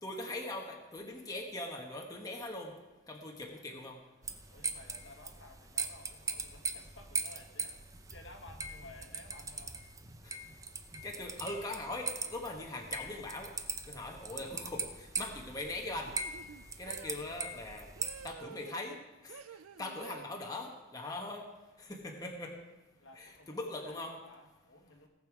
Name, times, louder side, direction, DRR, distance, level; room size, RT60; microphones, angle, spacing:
voice 1, 0.0-2.8 3.1-4.0 10.2-10.4 11.0-13.5 13.9-16.1 16.8-17.9 18.2-19.4 19.8-21.5 21.8-22.6 23.1-24.2, left 2 dB, 15° left, 0 dB, 1.2 m, -41 dB
sound 1, 4.2-18.3, right 4 dB, 15° right, 0.6 m, -41 dB
voice 2, 4.5-9.8 23.0-25.1, left 2 dB, 60° left, 4 dB, 1.5 m, -55 dB
sound 2, 14.3-14.6 16.1-17.3 18.0-19.0 19.3-20.3, right 6 dB, 90° right, 0.4 m, -51 dB
18.0 x 6.9 x 4.8 m, 1.1 s
head